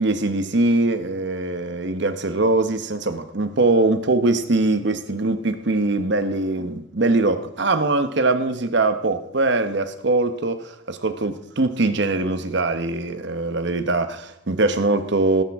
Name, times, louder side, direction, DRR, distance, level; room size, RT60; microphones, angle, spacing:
voice 1, 0.0-15.4, right 2 dB, 55° right, 1.0 m, -22 dB
18.0 x 10.5 x 3.6 m
head